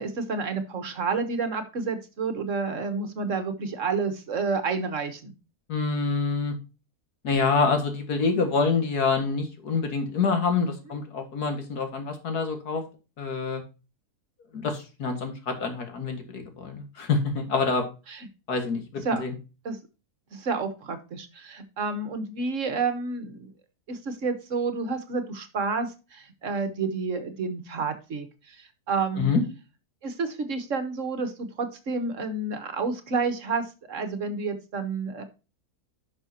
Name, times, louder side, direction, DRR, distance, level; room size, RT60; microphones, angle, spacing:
voice 1, 0.0-5.3 18.1-18.2 19.0-19.2 19.6-19.8 20.3-23.5 23.9-28.6 28.9-29.3 30.0-35.2, right 4 dB, 55° right, 9 dB, 1.5 m, -30 dB
voice 2, 5.7-6.5 7.2-12.8 13.2-13.6 14.5-17.8 18.5-19.3 29.2-29.4, left 4 dB, 85° left, 5 dB, 2.3 m, -26 dB
10.5 x 5.9 x 2.8 m, 0.30 s
omnidirectional pair, 1.6 m